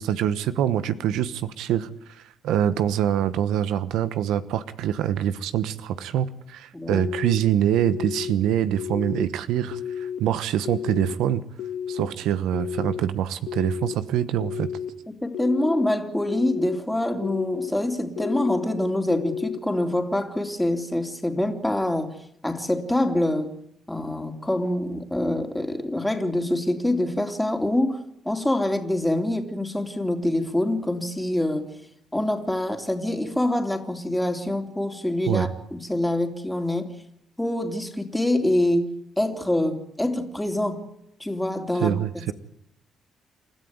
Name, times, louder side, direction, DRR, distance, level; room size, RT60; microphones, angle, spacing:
voice 1, 0.0-11.4 11.9-14.7 35.3-35.5 41.8-42.3, right 10 dB, 90° right, 13 dB, 1.2 m, -25 dB
voice 2, 6.7-7.1 15.1-22.1 22.4-23.5 23.9-28.0 28.2-31.7 32.1-36.9 37.4-38.9 39.2-40.8 41.2-41.9, left 1 dB, 5° left, 4 dB, 3.3 m, -25 dB
sound 1, 6.9-7.4 7.8-8.3 8.8-9.2 9.7-10.2 10.6-11.1 11.6-12.1 12.5-13.0 13.5-13.9 14.4-14.9 15.3-15.8 16.3-16.8 17.2-17.7 18.2-18.7 19.1-19.6, left 8 dB, 80° left, 1.6 m, -32 dB
28.5 x 13.0 x 9.6 m, 0.77 s
cardioid pair, 90°, 0 cm